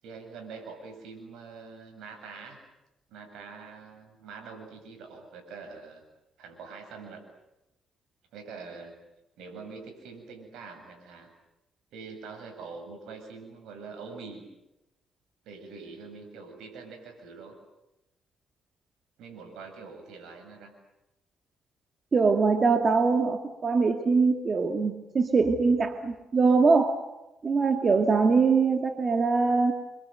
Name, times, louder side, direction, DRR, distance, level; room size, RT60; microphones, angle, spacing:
voice 1, 0.0-2.6 3.1-6.0 6.4-7.2 8.3-9.0 9.4-11.3 11.9-14.5 15.4-17.6 19.2-20.7, right 4 dB, 85° right, 4 dB, 7.9 m, -44 dB
voice 2, 22.1-27.0 27.4-29.7, right 4 dB, 40° right, 5 dB, 2.4 m, -23 dB
29.0 x 25.5 x 8.0 m, 0.93 s
cardioid pair, 90°, 0 cm